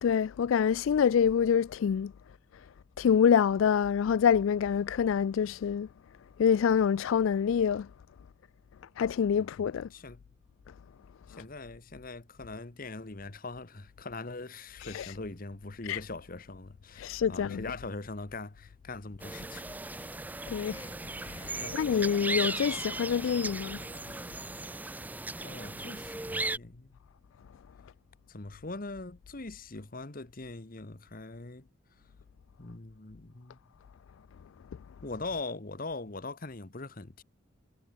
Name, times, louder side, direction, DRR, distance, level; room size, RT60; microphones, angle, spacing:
voice 1, 0.0-2.1 2.5-2.7 3.0-5.9 6.4-7.9 9.0-9.9 11.3-11.4 14.8-15.1 15.9-16.0 17.0-17.6 20.5-20.9 21.2-23.8, left 7 dB, 70° left, 0.3 m, -26 dB
voice 2, 9.9-10.2 11.3-20.3 21.5-21.8 25.4-26.9 28.3-31.7 32.6-33.6 35.0-37.2, left 3 dB, 40° left, 1.1 m, -42 dB
sound 1, 19.2-26.6, right 2 dB, 10° right, 0.3 m, -37 dB
head